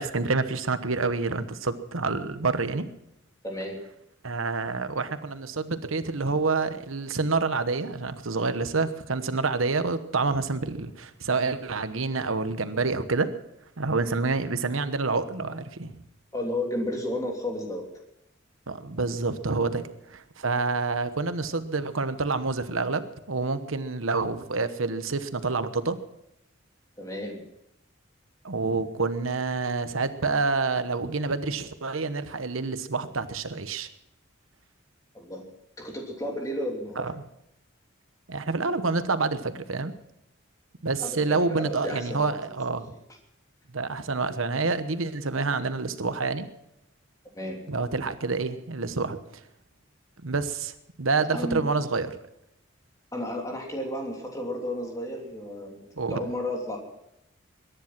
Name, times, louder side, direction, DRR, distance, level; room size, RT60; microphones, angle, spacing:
voice 1, 0.0-2.8 4.2-13.3 13.8-16.0 18.7-19.8 20.1-26.0 28.4-33.9 37.0-37.2 38.3-39.9 40.8-42.9 43.7-46.5 47.7-49.2 50.2-50.7 51.0-52.2 56.0-56.2, right 3 dB, 90° right, 11 dB, 1.1 m, -28 dB
voice 2, 3.4-3.8 16.3-17.8 27.0-27.5 35.1-35.4 35.8-37.0 41.0-42.3 47.3-47.6 51.3-51.6 53.1-56.8, left 1 dB, 15° left, 0 dB, 3.1 m, -32 dB
22.0 x 10.5 x 6.0 m, 0.80 s
head